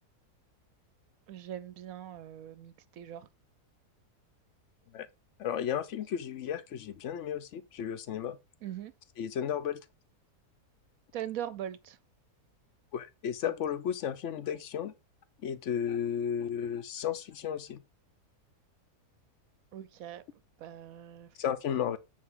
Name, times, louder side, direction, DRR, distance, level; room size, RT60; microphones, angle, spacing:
voice 1, 1.3-3.3 8.6-8.9 11.1-12.0 19.7-20.2 20.6-21.3 21.9-22.0, right 11 dB, 70° right, 0.9 m, -41 dB
voice 2, 5.4-8.4 9.2-9.8 12.9-14.9 15.4-17.8 21.4-22.0, left 9 dB, 60° left, 0.9 m, -33 dB
8.6 x 4.5 x 3.6 m
omnidirectional pair, 1.7 m